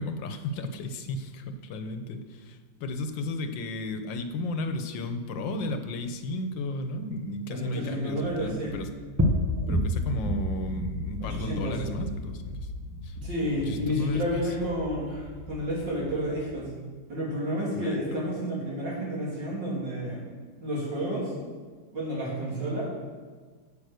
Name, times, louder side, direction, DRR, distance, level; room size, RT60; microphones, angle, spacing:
voice 1, 0.0-8.9 9.7-12.7 13.0-13.2 13.6-14.4 17.7-18.3, left 2 dB, 85° left, 8 dB, 1.6 m, -34 dB
voice 2, 7.5-8.8 11.2-11.8 13.2-16.7 17.1-20.2 20.6-21.3 21.9-22.8, equal, 70° right, -5 dB, 3.8 m, -30 dB
sound 1, 8.3-16.5, left 1 dB, 15° right, 0.7 m, -32 dB
8.6 x 8.0 x 6.5 m, 1.4 s
omnidirectional pair, 2.0 m